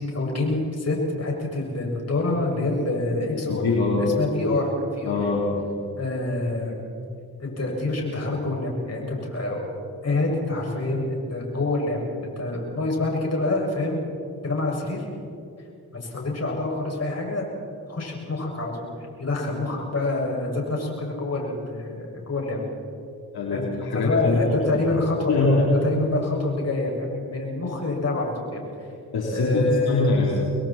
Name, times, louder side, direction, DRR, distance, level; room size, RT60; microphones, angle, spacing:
voice 1, 0.0-3.6 4.0-5.2 6.0-6.7 7.4-9.6 10.0-14.0 14.4-15.0 16.0-17.5 17.9-18.9 19.2-22.6 23.5-23.7 23.9-28.6 29.3-30.2, left 2 dB, 45° left, -1 dB, 7.2 m, -26 dB
voice 2, 3.5-4.2 5.0-5.6 23.3-24.8 25.3-25.9 29.1-30.4, left 3 dB, 80° left, -4 dB, 4.0 m, -23 dB
29.0 x 21.5 x 4.5 m, 2.5 s
cardioid pair, 55°, 37 cm